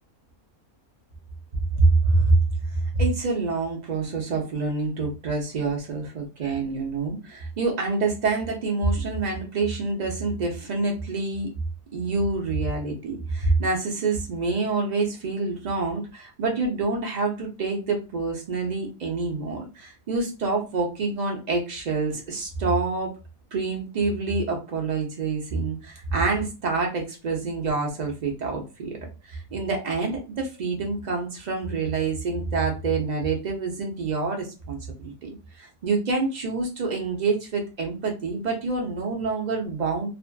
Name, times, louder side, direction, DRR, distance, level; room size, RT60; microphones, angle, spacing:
voice 1, 1.8-2.3 2.7-11.5 11.9-23.1 23.5-28.9 29.2-35.3 35.6-40.1, right 3 dB, 55° right, 1 dB, 0.5 m, -26 dB
2.5 x 2.4 x 2.2 m, 0.29 s
omnidirectional pair, 1.6 m